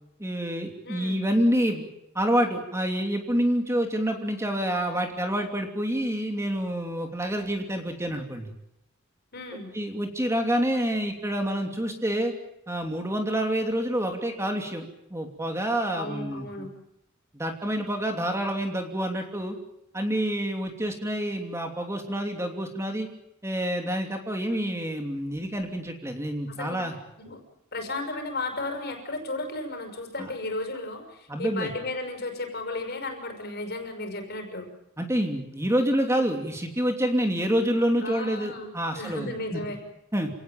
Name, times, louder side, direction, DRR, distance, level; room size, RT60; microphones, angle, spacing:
voice 1, 0.2-1.9 2.1-8.5 9.7-12.3 12.7-16.7 17.3-19.6 19.9-23.1 23.4-26.9 30.2-30.3 31.3-31.7 35.0-39.6 40.1-40.3, equal, 15° right, 4 dB, 2.9 m, -27 dB
voice 2, 0.8-1.3 9.3-9.7 15.9-16.7 26.5-26.9 27.2-27.4 27.7-34.7 38.0-39.8, left 2 dB, 50° left, 5 dB, 6.2 m, -34 dB
28.5 x 18.0 x 9.1 m, 0.84 s
head